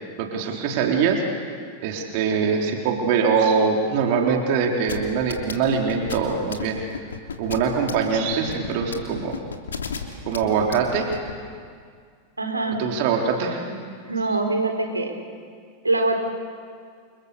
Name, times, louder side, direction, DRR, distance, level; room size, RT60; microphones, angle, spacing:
voice 1, 0.2-1.2 1.8-6.8 7.4-9.4 10.3-11.1 12.8-13.6, right 6 dB, 45° right, 1 dB, 3.9 m, -23 dB
sound 1, 4.9-11.3, left 6 dB, 70° left, 2.9 m, -32 dB
voice 2, 12.4-12.8 13.7-13.8 14.1-15.2 15.8-16.2, right 2 dB, 80° right, 4 dB, 4.0 m, -23 dB
29.5 x 28.5 x 6.9 m, 2.1 s
figure-of-eight pair, 90°, 0 cm